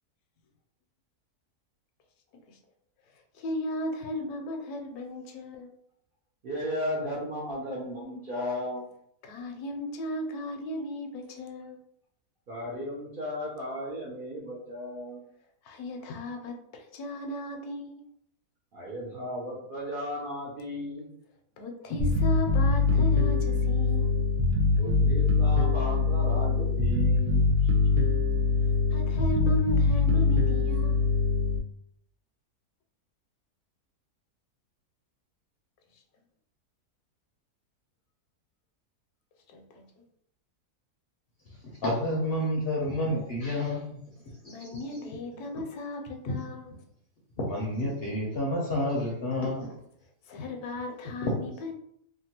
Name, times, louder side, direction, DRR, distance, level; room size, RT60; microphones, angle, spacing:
voice 1, 3.1-5.7 9.2-11.8 15.6-18.0 21.6-24.2 28.9-31.0 35.9-36.0 39.5-39.8 44.4-46.7 50.3-51.7, left 1 dB, 80° left, 3 dB, 1.1 m, -36 dB
voice 2, 6.4-8.8 12.5-15.2 18.7-21.1 24.7-27.4, equal, 60° right, -5 dB, 0.5 m, -35 dB
Bass guitar, 22.0-31.6, left 4 dB, 75° right, 1.1 m, -23 dB
voice 3, 41.6-44.0 44.4-45.4 47.5-49.7 51.2-51.3, left 1 dB, 60° left, -3 dB, 0.6 m, -30 dB
2.9 x 2.3 x 2.8 m, 0.71 s
omnidirectional pair, 1.6 m